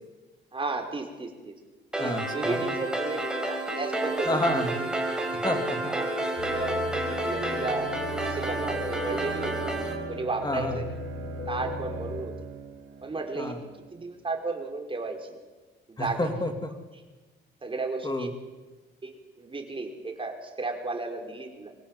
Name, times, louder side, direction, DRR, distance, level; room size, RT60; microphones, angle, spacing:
voice 1, 0.5-1.5 2.0-4.4 4.7-4.9 5.8-7.9 8.2-9.8 10.1-11.0 11.5-12.3 13.0-13.7 13.9-15.3 15.9-16.2 17.6-18.3 19.0-21.7, right 3 dB, 25° right, 3 dB, 4.9 m, -34 dB
sound 1, 1.9-9.9, right 1 dB, 5° right, 5.0 m, -30 dB
voice 2, 2.0-2.7 4.3-4.8 5.4-5.9 10.4-10.8 13.4-13.6 16.0-16.7 18.0-18.3, left 1 dB, 20° left, 6 dB, 3.0 m, -29 dB
Bowed string instrument, 6.3-14.1, right 10 dB, 90° right, 3.0 m, -42 dB
sound 2, 6.4-12.2, left 4 dB, 50° left, 2.2 m, -38 dB
25.0 x 16.5 x 8.0 m, 1.2 s
cardioid pair, 90°, 20 cm